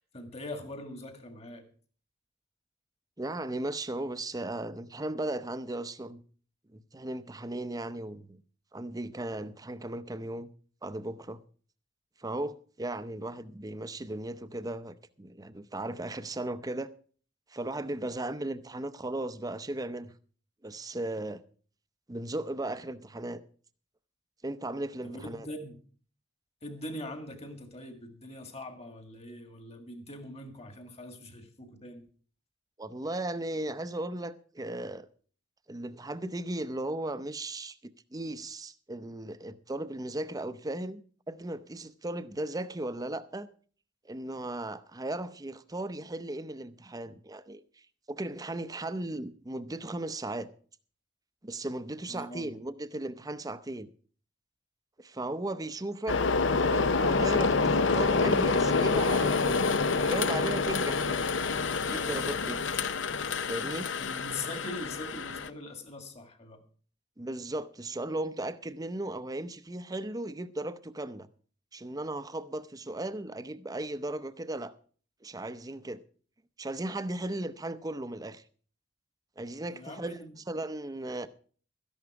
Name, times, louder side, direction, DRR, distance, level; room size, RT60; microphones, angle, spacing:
voice 1, 0.1-1.7 25.0-25.8 26.6-32.0 52.1-52.5 64.0-66.6 79.7-80.3, left 1 dB, 30° left, 1.9 m, -42 dB
voice 2, 3.2-6.2 6.7-8.4 8.7-10.5 10.8-11.4 12.2-16.9 17.5-20.1 20.6-21.4 22.1-23.4 24.4-25.5 32.8-35.1 35.7-37.8 38.1-41.0 41.3-43.5 44.0-47.6 48.1-50.5 51.4-53.9 55.0-56.2 56.7-59.6 60.0-61.2 61.8-62.6 63.5-63.9 67.2-71.3 71.7-74.7 75.2-76.0 76.6-78.4 79.4-81.3, right 1 dB, 20° right, 0.6 m, -36 dB
sound 1, 56.1-65.5, left 4 dB, 65° left, 0.7 m, -27 dB
13.5 x 11.0 x 4.8 m
head